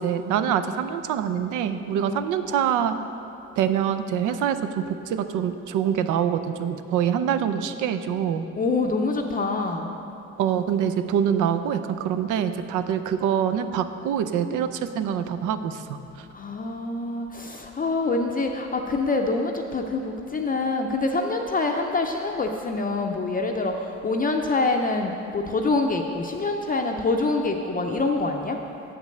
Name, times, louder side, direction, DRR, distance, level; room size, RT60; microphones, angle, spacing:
voice 1, 0.0-2.9 3.6-8.5 10.4-14.7 15.0-16.0, right 8 dB, 85° right, 10 dB, 0.5 m, -25 dB
voice 2, 8.6-9.9 16.3-28.6, left 3 dB, 30° left, 2 dB, 0.5 m, -25 dB
7.2 x 5.2 x 6.5 m, 2.7 s
cardioid pair, 90°, 30 cm